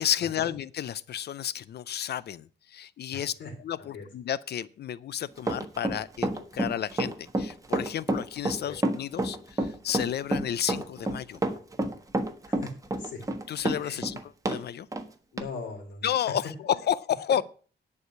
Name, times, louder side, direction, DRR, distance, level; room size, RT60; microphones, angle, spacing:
voice 1, 0.0-3.3 3.6-11.4 13.5-14.9 16.0-17.4, left 10 dB, 65° left, 0.5 m, -31 dB
voice 2, 3.1-3.5 3.8-4.1 8.6-8.8 12.4-13.2 13.8-14.0 15.3-16.4, left 4 dB, 85° left, 3.1 m, -40 dB
Run, 5.4-14.6 14.9-15.0 15.4-15.5, right 2 dB, 20° right, 1.3 m, -28 dB
10.5 x 4.9 x 8.2 m
cardioid pair, 130°, 18 cm